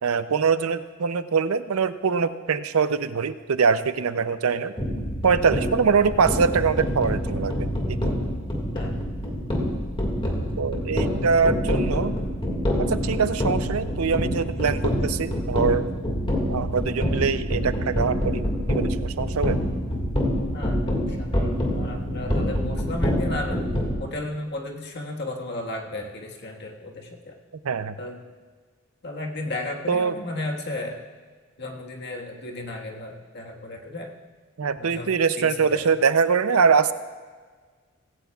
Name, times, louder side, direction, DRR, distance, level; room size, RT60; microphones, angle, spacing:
voice 1, 0.0-4.7 5.2-8.0 10.6-12.1 12.8-15.9 16.5-18.4 18.7-19.6 27.6-28.0 29.9-30.1 34.6-36.9, right 5 dB, 90° right, 12 dB, 0.6 m, -23 dB
sound 1, 4.8-23.9, equal, 25° left, 1.9 m, -26 dB
voice 2, 20.5-23.6 24.0-27.4 28.0-28.2 29.0-31.0 31.6-34.1 34.8-35.9, left 2 dB, 50° left, 1 dB, 1.6 m, -34 dB
17.0 x 16.5 x 2.4 m, 1.5 s
head